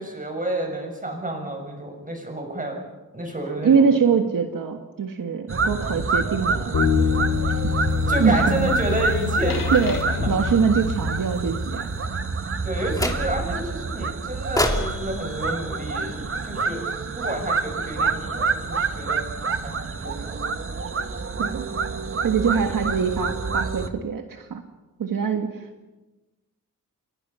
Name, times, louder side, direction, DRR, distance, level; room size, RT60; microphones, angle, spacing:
voice 1, 0.0-2.8 3.1-3.8 8.1-9.7 12.6-16.8 17.1-20.5, right 1 dB, 25° right, 3 dB, 6.8 m, -30 dB
voice 2, 3.6-6.8 7.5-7.7 8.2-8.7 9.7-11.9 21.4-21.7 22.2-24.6 25.0-25.7, right 6 dB, 70° right, 5 dB, 1.7 m, -23 dB
sound 1, 5.5-23.9, right 4 dB, 40° right, 1.4 m, -27 dB
sound 2, 6.7-11.7, left 6 dB, 75° left, 4.6 m, -26 dB
sound 3, 12.9-13.6 14.6-16.8, left 1 dB, 10° left, 2.7 m, -29 dB
29.5 x 23.0 x 5.7 m, 1.1 s
wide cardioid pair, 145°, 34 cm